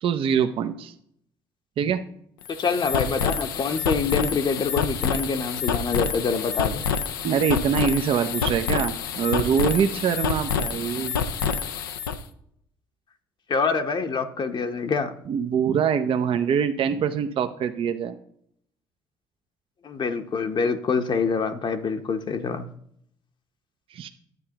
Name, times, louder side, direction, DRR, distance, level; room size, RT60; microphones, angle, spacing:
voice 1, 0.0-0.9 1.8-2.0 7.2-11.1 15.3-18.2 23.9-24.1, right 7 dB, 55° right, 8 dB, 0.6 m, -24 dB
sound 1, 2.4-12.2, left 6 dB, 90° left, 0.5 m, -27 dB
voice 2, 2.6-6.8 13.5-15.1 19.8-22.7, left 5 dB, 45° left, 7 dB, 0.8 m, -26 dB
10.5 x 8.6 x 2.9 m, 0.71 s
hypercardioid pair, 55°, 11 cm